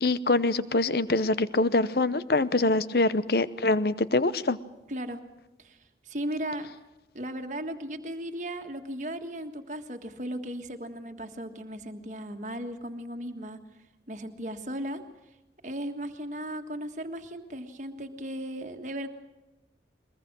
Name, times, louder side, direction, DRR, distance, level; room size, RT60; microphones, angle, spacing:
voice 1, 0.0-4.6, left 2 dB, 60° left, 15 dB, 0.8 m, -24 dB
voice 2, 4.9-5.2 5.6-5.8 6.0-6.7 7.1-13.6 14.1-15.0 15.6-19.1, right 1 dB, 45° right, 5 dB, 1.7 m, -36 dB
21.5 x 21.5 x 6.2 m, 1.0 s
head